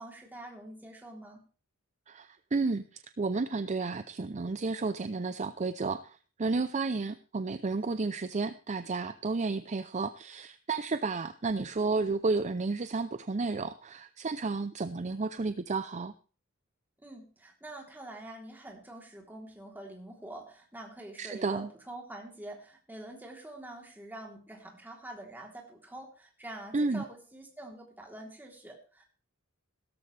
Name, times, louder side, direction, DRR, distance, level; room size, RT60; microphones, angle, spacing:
voice 1, 0.0-1.4 17.0-29.0, right 1 dB, 10° right, 0 dB, 3.4 m, -46 dB
voice 2, 2.1-16.1 21.2-21.7 26.7-27.0, right 3 dB, 35° right, 11 dB, 0.5 m, -32 dB
17.0 x 13.5 x 3.3 m, 0.36 s
head